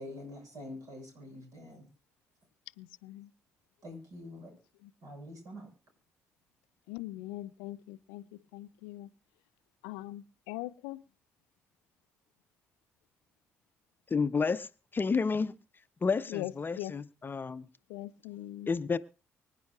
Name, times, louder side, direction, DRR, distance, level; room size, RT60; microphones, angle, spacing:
voice 1, 0.0-1.9 3.8-4.5 5.0-5.7, left 1 dB, 55° right, 6.6 m, -45 dB
voice 2, 2.8-3.3 6.9-8.2 8.5-9.1 9.8-11.0 16.3-16.5 16.8-16.9 17.9-18.7, left 16 dB, 70° left, 0.5 m, -41 dB
voice 3, 14.1-15.5 16.0-17.7 18.7-19.0, left 5 dB, 30° left, 0.7 m, -30 dB
25.0 x 9.8 x 2.4 m
figure-of-eight pair, 45°, 7 cm